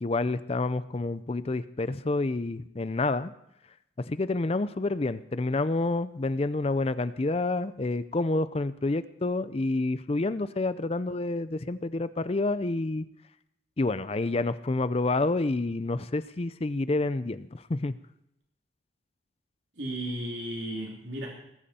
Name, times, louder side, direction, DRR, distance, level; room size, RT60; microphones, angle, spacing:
voice 1, 0.0-3.3 4.1-13.0 13.8-18.0, left 2 dB, 30° left, 14 dB, 0.5 m, -28 dB
voice 2, 19.8-21.3, right 1 dB, 70° right, -2 dB, 3.0 m, -34 dB
20.0 x 14.0 x 4.3 m, 0.82 s
head